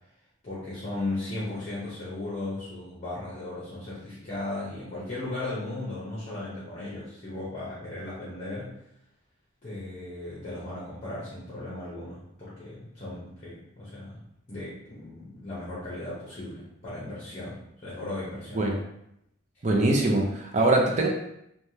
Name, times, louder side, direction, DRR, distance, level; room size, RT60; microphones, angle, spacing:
voice 1, 0.4-8.8 9.6-14.2 14.5-18.7, left 2 dB, 35° left, -7 dB, 0.8 m, -36 dB
voice 2, 19.6-21.1, right 2 dB, 35° right, 0 dB, 0.4 m, -22 dB
3.2 x 2.2 x 2.7 m, 0.78 s
head